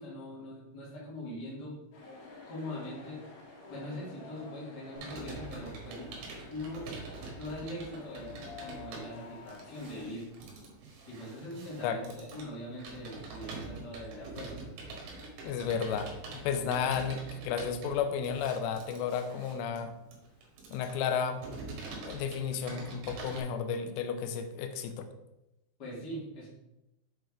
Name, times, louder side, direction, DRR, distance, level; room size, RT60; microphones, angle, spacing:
voice 1, 0.0-1.8 2.5-3.2 3.7-6.2 6.5-6.9 7.4-10.2 11.1-14.7 15.0-15.2 25.8-26.5, left 1 dB, 40° left, -7 dB, 1.5 m, -42 dB
sound 1, 1.9-10.1, left 3 dB, 60° left, 3.6 m, -50 dB
Computer keyboard, 5.0-23.4, right 3 dB, 70° right, 3.6 m, -45 dB
voice 2, 15.4-16.1 16.4-20.0 20.7-21.4 22.1-25.1, left 7 dB, 80° left, 7 dB, 2.8 m, -32 dB
7.9 x 4.4 x 4.7 m, 0.93 s
omnidirectional pair, 5.2 m